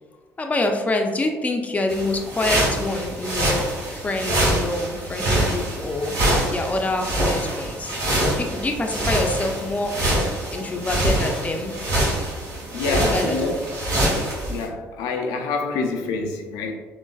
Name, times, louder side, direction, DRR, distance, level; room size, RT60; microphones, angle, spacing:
voice 1, 0.4-6.2 6.5-7.9 8.4-9.9 10.5-11.7 12.8-13.5, left 2 dB, 20° left, 3 dB, 0.5 m, -26 dB
sound 1, 1.9-14.7, right 1 dB, 65° right, 1.4 m, -25 dB
voice 2, 10.5-10.9 12.7-13.6 14.5-16.8, left 3 dB, 80° left, 3 dB, 0.3 m, -27 dB
3.7 x 2.2 x 2.3 m, 1.3 s
supercardioid pair, 65°, 6 cm